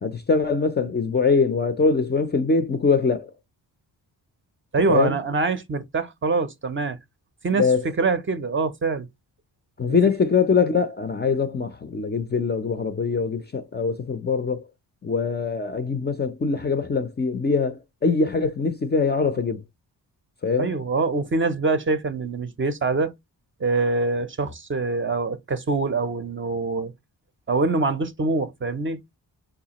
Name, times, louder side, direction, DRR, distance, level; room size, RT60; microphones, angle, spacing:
voice 1, 0.0-3.3 4.9-5.2 7.6-7.8 9.8-14.7 15.0-19.6 20.4-20.7, left 4 dB, 25° left, 0.4 m, -23 dB
voice 2, 4.7-7.0 7.4-7.7 8.0-9.1 9.9-10.0 20.6-23.1 23.6-26.9 27.5-29.0, right 3 dB, 30° right, 0.5 m, -24 dB
4.8 x 2.3 x 2.8 m
cardioid pair, 90°, 40 cm